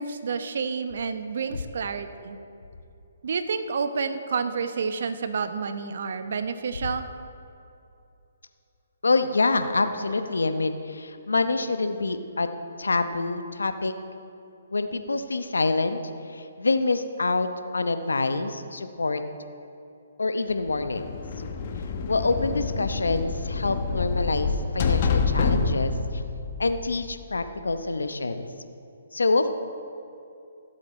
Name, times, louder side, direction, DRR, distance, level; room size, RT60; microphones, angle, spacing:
voice 1, 0.0-2.4 3.2-7.1, right 5 dB, 65° right, 9 dB, 0.8 m, -29 dB
voice 2, 9.0-12.5 12.8-13.9 14.7-16.0 16.3-19.2 20.2-21.0 22.1-26.2 26.6-28.5 29.1-29.5, left 3 dB, 85° left, 9 dB, 0.8 m, -26 dB
sound 1, 20.7-27.4, left 4 dB, 45° left, 1.0 m, -27 dB
17.5 x 7.7 x 4.3 m, 2.7 s
hypercardioid pair, 140°, 0 cm